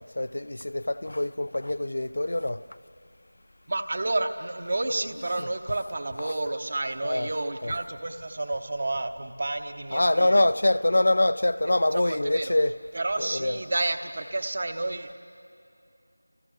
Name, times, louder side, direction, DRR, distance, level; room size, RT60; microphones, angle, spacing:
voice 1, 0.0-2.6 4.8-5.0 5.3-5.5 6.2-6.3 7.0-7.3 7.6-7.7 9.9-12.8 13.2-13.6, left 1 dB, 50° left, 0.5 m, -25 dB
voice 2, 3.7-10.5 11.9-12.5 12.9-15.1, right 2 dB, 30° right, 0.9 m, -30 dB
29.5 x 28.5 x 6.7 m
figure-of-eight pair, 180°, 0 cm